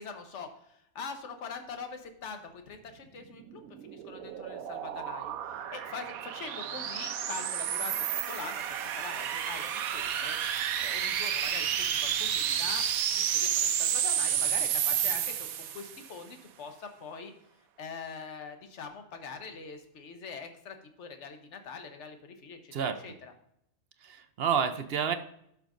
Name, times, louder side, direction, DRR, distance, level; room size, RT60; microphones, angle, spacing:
voice 1, 0.0-7.9 8.3-10.4 10.8-12.8 13.1-17.3 17.8-22.7 23.0-23.3, left 5 dB, 55° left, 6 dB, 1.3 m, -43 dB
sound 1, 3.4-16.0, right 9 dB, 85° right, 1.1 m, -31 dB
voice 2, 22.7-23.0 24.0-25.1, right 7 dB, 55° right, 9 dB, 0.7 m, -29 dB
12.0 x 6.4 x 2.5 m, 0.73 s
omnidirectional pair, 1.5 m